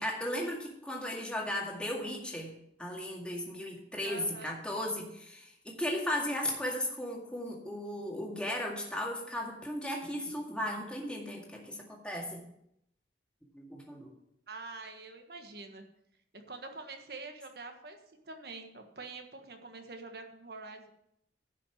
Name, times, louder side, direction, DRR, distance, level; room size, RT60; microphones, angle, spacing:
voice 1, 0.0-2.5 2.8-12.4 13.5-14.1, left 1 dB, 5° left, -1 dB, 2.0 m, -36 dB
voice 2, 4.0-4.6 14.5-15.8 16.3-18.0 18.2-20.9, right 3 dB, 60° right, 5 dB, 1.4 m, -45 dB
10.5 x 5.9 x 7.2 m, 0.76 s
head